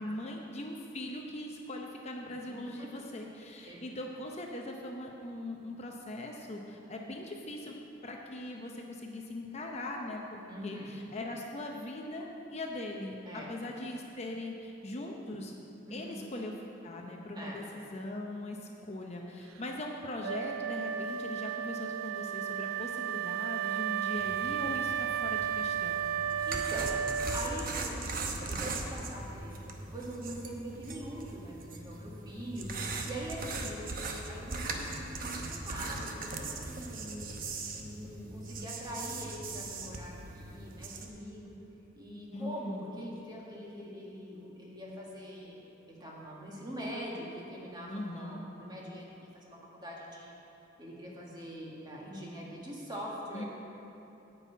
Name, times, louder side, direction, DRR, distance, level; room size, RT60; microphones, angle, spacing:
voice 1, 0.0-15.5 15.9-16.5 16.8-18.6 18.8-26.0 42.3-42.8 47.9-48.4 53.3-53.4, left 1 dB, 35° left, 1 dB, 0.7 m, -40 dB
voice 2, 2.6-3.0 3.6-3.9 10.5-10.9 13.2-13.5 15.9-16.2 17.3-17.6 26.4-36.1 36.4-37.3 37.7-41.5 42.0-45.6 45.9-50.3 50.8-53.4, equal, 20° right, -4 dB, 1.7 m, -43 dB
Wind instrument woodwind instrument, 20.2-27.8, right 9 dB, 85° right, 0.3 m, -33 dB
sound 1, 24.2-41.1, right 3 dB, 45° right, 0.9 m, -40 dB
9.6 x 5.6 x 8.3 m, 2.9 s
head